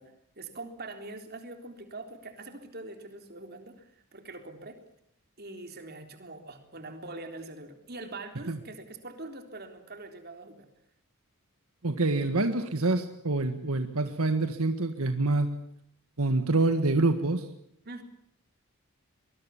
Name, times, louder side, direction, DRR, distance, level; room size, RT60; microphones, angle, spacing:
voice 1, 0.0-4.8 5.4-10.7 17.8-18.0, right 2 dB, 45° right, 6 dB, 3.8 m, -43 dB
voice 2, 11.8-15.5 16.2-17.5, right 2 dB, 75° right, 8 dB, 1.7 m, -26 dB
24.0 x 21.5 x 7.2 m, 0.73 s
head